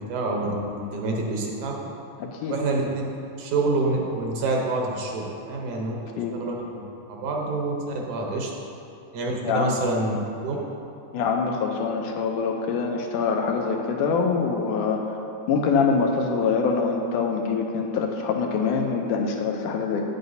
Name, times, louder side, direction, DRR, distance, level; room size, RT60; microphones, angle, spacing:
voice 1, 0.0-1.8 2.5-3.1 3.4-6.0 6.3-6.8 7.1-8.5 9.1-10.2 10.4-10.6, right 2 dB, 75° right, -1 dB, 2.2 m, -27 dB
voice 2, 2.2-2.5 6.2-6.4 9.4-9.7 11.1-15.2 15.5-20.1, left 5 dB, 85° left, 2 dB, 2.2 m, -24 dB
9.2 x 7.9 x 2.7 m, 2.7 s
omnidirectional pair, 3.6 m